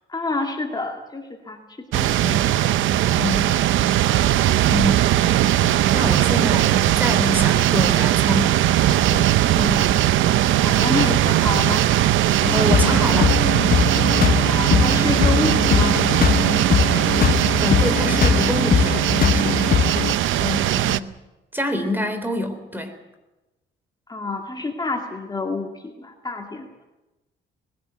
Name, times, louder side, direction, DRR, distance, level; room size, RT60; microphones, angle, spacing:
voice 1, 0.1-2.4 9.4-10.0 10.6-11.8 14.4-16.0 24.1-26.7, left 3 dB, 20° left, 2 dB, 2.3 m, -28 dB
sound 1, 1.9-21.0, right 13 dB, 80° right, 0.7 m, -19 dB
voice 2, 3.1-3.5 4.6-5.0 5.9-8.6 9.1-9.3 12.5-13.4 17.6-19.9 20.4-21.1 21.5-22.9, left 1 dB, 10° right, 8 dB, 3.7 m, -26 dB
sound 2, 12.4-20.1, left 7 dB, 45° left, 0.8 m, -21 dB
20.5 x 16.5 x 8.2 m, 1.1 s
cardioid pair, 90°, 20 cm